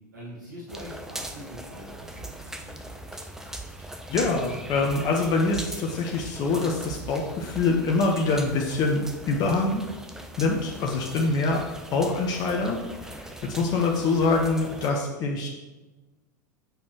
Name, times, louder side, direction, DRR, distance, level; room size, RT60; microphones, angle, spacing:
voice 1, 0.1-3.0, equal, 85° right, -7 dB, 1.9 m, -43 dB
sound 1, 0.7-14.9, right 1 dB, 5° right, 0.8 m, -41 dB
sound 2, 2.1-2.5 2.8-5.9 6.1-7.2 7.4-7.7, right 4 dB, 25° left, 2.1 m, -44 dB
voice 2, 4.1-9.8 10.4-12.8 13.2-15.5, left 3 dB, 40° left, 0 dB, 1.1 m, -25 dB
8.3 x 6.3 x 3.1 m, 1.1 s
figure-of-eight pair, 85°, 10 cm